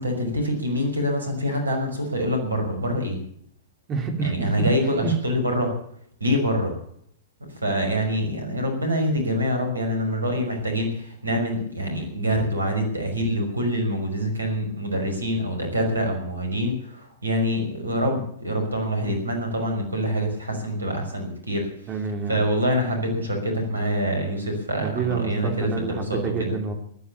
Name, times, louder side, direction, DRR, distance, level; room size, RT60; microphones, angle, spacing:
voice 1, 0.0-3.2 4.2-5.7 6.2-6.7 7.6-21.7 22.3-26.5, equal, 80° right, 4 dB, 5.7 m, -25 dB
voice 2, 3.9-4.7 5.0-5.1 21.9-22.4 24.8-26.7, right 4 dB, 25° right, 4 dB, 3.8 m, -28 dB
15.0 x 12.5 x 7.2 m, 0.67 s
figure-of-eight pair, 100°, 0 cm